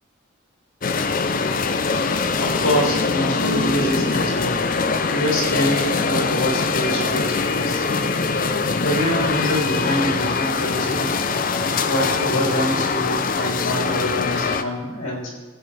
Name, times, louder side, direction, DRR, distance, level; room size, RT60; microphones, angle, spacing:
sound 1, 0.8-14.6, left 4 dB, 40° left, 0.5 m, -23 dB
voice 1, 2.4-4.6 5.1-7.9 8.8-11.1 11.9-15.3, equal, 85° left, -3 dB, 2.9 m, -25 dB
20.0 x 7.9 x 3.3 m, 1.3 s
head